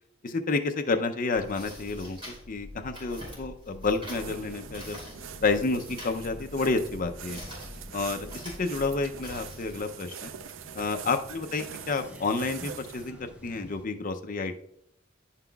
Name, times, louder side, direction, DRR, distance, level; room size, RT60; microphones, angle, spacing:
voice 1, 0.2-5.0 5.4-7.4 7.9-10.3 10.8-13.2 13.4-14.6, left 3 dB, 40° left, 6 dB, 0.5 m, -30 dB
sound 1, 1.4-9.8, equal, 25° right, 2.9 m, -44 dB
sound 2, 4.1-13.1, right 8 dB, 70° right, 0.4 m, -44 dB
sound 3, 4.2-13.9, equal, 5° right, 0.6 m, -50 dB
10.0 x 5.7 x 2.3 m, 0.72 s
head